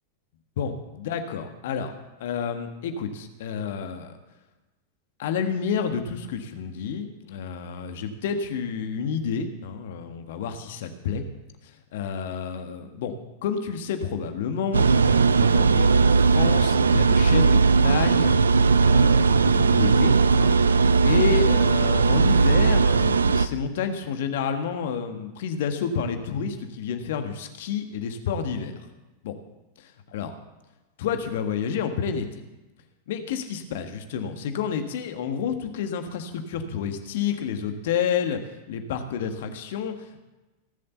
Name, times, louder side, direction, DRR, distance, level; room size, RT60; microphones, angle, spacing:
voice 1, 0.6-1.9 2.2-4.1 5.2-11.2 11.9-13.2 13.4-18.4 18.7-20.5 21.0-28.7 29.2-29.4 29.8-30.3 31.0-32.4 33.1-38.4 38.7-39.9, left 7 dB, 55° left, 7 dB, 1.5 m, -29 dB
sound 1, 14.7-23.5, right 4 dB, 70° right, 0.6 m, -18 dB
18.0 x 7.5 x 6.9 m, 1.1 s
figure-of-eight pair, 90°, 0 cm